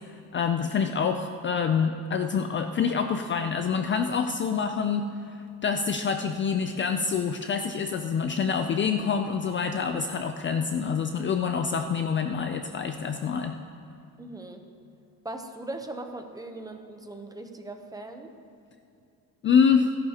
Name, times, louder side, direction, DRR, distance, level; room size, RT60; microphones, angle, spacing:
voice 1, 0.3-13.6 19.4-19.9, left 6 dB, 35° left, 6 dB, 0.4 m, -26 dB
voice 2, 14.2-14.6 15.2-18.3, right 2 dB, 10° right, 5 dB, 0.7 m, -39 dB
28.0 x 11.0 x 2.9 m, 2.6 s
cardioid pair, 170°, 37 cm